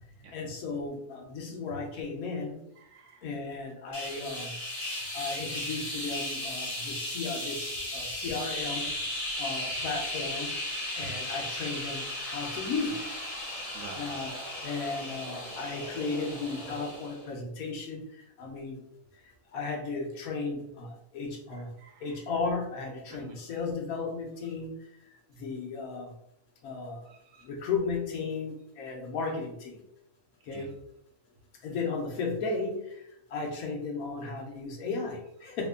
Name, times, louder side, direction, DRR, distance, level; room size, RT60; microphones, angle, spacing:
voice 1, 0.3-2.5 3.2-4.6 5.1-8.9 9.4-10.5 11.0-13.1 13.9-14.3 14.6-18.0 18.4-18.8 19.5-21.7 22.0-24.8 25.4-26.1 26.6-27.1 27.4-29.7 30.5-30.7 31.6-32.8 33.3-35.7, left 4 dB, 80° left, 1 dB, 1.2 m, -35 dB
voice 2, 2.8-3.2 11.0-11.1 13.7-14.1 21.5-22.2 23.1-23.4 27.1-27.5 30.5-30.7, right 4 dB, 70° right, 2 dB, 0.8 m, -49 dB
sound 1, 3.9-17.3, left 1 dB, 35° left, 0.7 m, -36 dB
3.2 x 2.1 x 3.6 m, 0.79 s
omnidirectional pair, 1.5 m